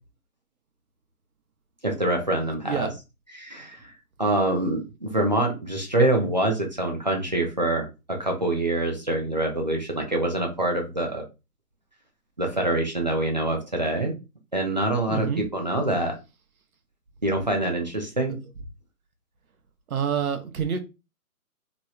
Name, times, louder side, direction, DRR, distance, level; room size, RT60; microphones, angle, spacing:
voice 1, 1.8-2.9 3.3-3.8 4.2-11.2 12.4-14.1 14.5-16.2 17.2-18.4, right 1 dB, 30° right, 0.4 m, -25 dB
voice 2, 15.1-15.4 19.9-20.8, right 7 dB, 70° right, 0.7 m, -27 dB
2.9 x 2.8 x 2.3 m
hypercardioid pair, 150°, 45 cm